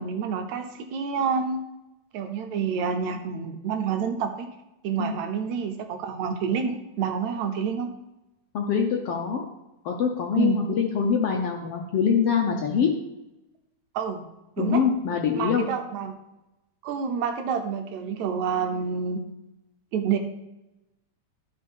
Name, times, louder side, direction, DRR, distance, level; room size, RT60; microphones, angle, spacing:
voice 1, 0.0-1.6 2.1-4.5 4.8-7.9 10.4-10.6 13.9-14.2 14.6-14.8 15.4-16.2 16.8-19.2 19.9-20.2, right 6 dB, 75° right, 6 dB, 1.9 m, -28 dB
voice 2, 8.5-9.4 9.8-12.9 14.6-15.7, left 6 dB, 65° left, 2 dB, 1.6 m, -24 dB
12.0 x 4.7 x 5.4 m, 0.94 s
omnidirectional pair, 3.6 m